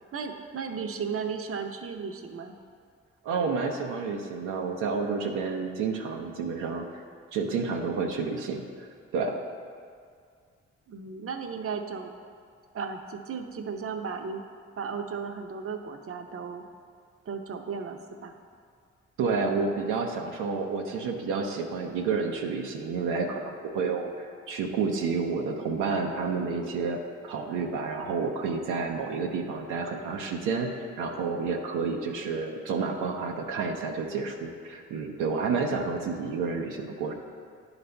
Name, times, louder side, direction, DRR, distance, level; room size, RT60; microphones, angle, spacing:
voice 1, 0.1-2.6 10.9-12.1 12.7-14.4 14.8-16.6 17.3-18.3, right 5 dB, 45° right, 6 dB, 0.7 m, -35 dB
voice 2, 3.2-7.0 7.3-9.4 19.2-37.1, right 4 dB, 90° right, 2 dB, 0.6 m, -30 dB
10.5 x 4.0 x 3.3 m, 2.1 s
supercardioid pair, 45°, 31 cm